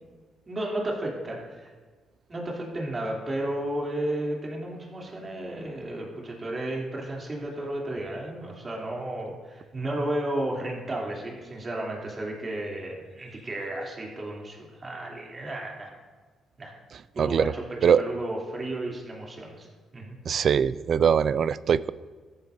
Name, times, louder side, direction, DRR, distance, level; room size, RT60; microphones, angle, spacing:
voice 1, 0.5-1.7 2.3-15.9 16.6-16.7 17.2-19.7 19.9-20.2, right 1 dB, 30° right, -2 dB, 3.0 m, -33 dB
voice 2, 17.2-17.5 17.8-18.0 20.3-21.9, right 7 dB, 55° right, 18 dB, 0.3 m, -22 dB
14.0 x 11.5 x 2.7 m, 1.5 s
cardioid pair, 90°, 0 cm